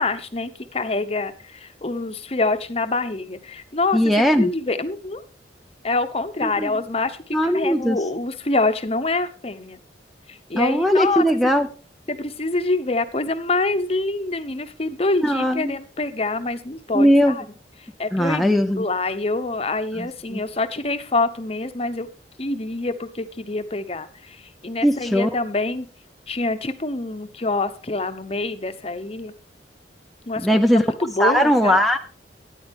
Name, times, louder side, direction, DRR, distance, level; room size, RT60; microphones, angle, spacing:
voice 1, 0.0-5.2 5.8-9.8 10.3-11.3 12.1-17.4 18.0-22.1 22.4-25.9 26.3-29.3 30.3-31.8, left 3 dB, 35° left, 9 dB, 0.9 m, -26 dB
voice 2, 3.9-4.5 6.4-6.7 7.3-8.0 10.6-11.7 15.2-15.7 16.9-17.4 18.1-18.8 20.0-20.4 24.8-25.3 30.4-30.9 31.2-32.0, equal, ahead, 3 dB, 0.5 m, -19 dB
13.5 x 10.0 x 3.6 m, 0.38 s
head